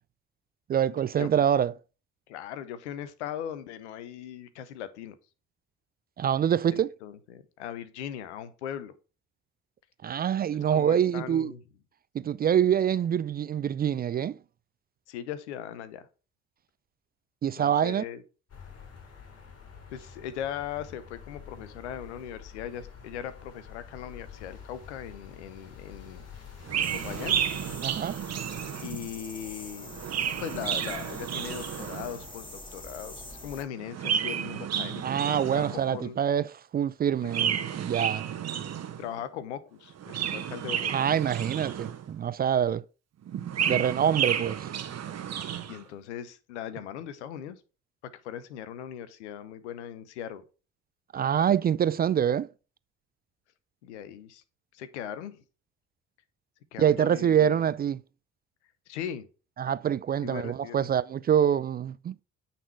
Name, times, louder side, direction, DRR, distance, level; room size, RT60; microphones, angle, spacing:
voice 1, 0.7-1.7 6.2-6.9 10.0-11.5 12.1-14.4 17.4-18.0 27.8-28.2 35.0-36.5 36.7-38.3 40.9-42.8 43.7-44.7 51.1-52.5 56.8-58.0 59.6-62.1, right 9 dB, 30° right, 0.3 m, -25 dB
voice 2, 2.3-5.1 6.7-8.9 10.7-11.6 15.1-16.1 17.6-18.2 19.9-26.2 27.0-27.4 28.8-30.0 30.4-36.2 37.2-37.4 39.0-41.1 43.6-43.9 45.7-47.6 48.2-50.4 53.8-54.4 54.7-55.4 56.7-57.6 58.9-59.3 60.2-60.9, left 9 dB, 85° left, 0.8 m, -39 dB
sound 1, 18.5-27.7, left 6 dB, 45° left, 2.6 m, -47 dB
Chirp tweet, 26.6-29.1 29.8-32.2 33.8-36.0 37.2-39.1 39.9-42.2 43.3-45.8, right 9 dB, 50° right, 1.2 m, -32 dB
sound 2, 26.8-33.6, left 1 dB, 15° left, 2.1 m, -44 dB
9.1 x 4.3 x 4.6 m
hypercardioid pair, 50°, 34 cm